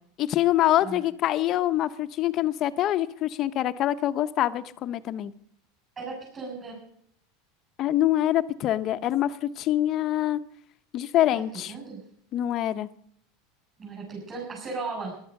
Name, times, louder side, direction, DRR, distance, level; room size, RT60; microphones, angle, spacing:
voice 1, 0.2-5.3 7.8-10.4 10.9-11.7 12.3-12.9, left 13 dB, 40° left, 12 dB, 0.8 m, -25 dB
voice 2, 6.0-6.8 11.3-12.0 13.8-15.1, right 4 dB, 25° right, -4 dB, 7.1 m, -36 dB
17.0 x 11.5 x 6.5 m, 0.67 s
supercardioid pair, 145°, 0 cm